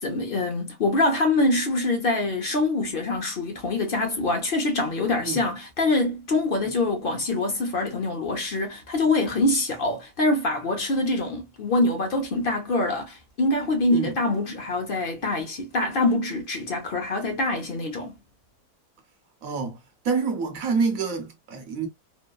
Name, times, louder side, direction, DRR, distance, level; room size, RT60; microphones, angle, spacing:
voice 1, 0.0-18.1, left 2 dB, 60° left, 0.5 m, -25 dB
voice 2, 19.4-19.8 20.0-21.9, right 5 dB, 70° right, 1.1 m, -27 dB
3.0 x 2.1 x 2.2 m
omnidirectional pair, 1.6 m